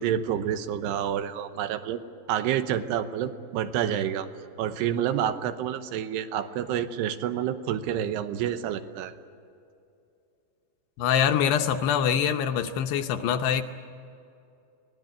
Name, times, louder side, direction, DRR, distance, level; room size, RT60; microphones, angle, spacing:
voice 1, 0.0-2.0 2.3-4.3 4.6-9.1, right 10 dB, 75° right, 10 dB, 2.7 m, -28 dB
voice 2, 11.0-13.6, left 8 dB, 75° left, 6 dB, 2.7 m, -24 dB
24.0 x 18.5 x 9.7 m, 2.5 s
omnidirectional pair, 5.3 m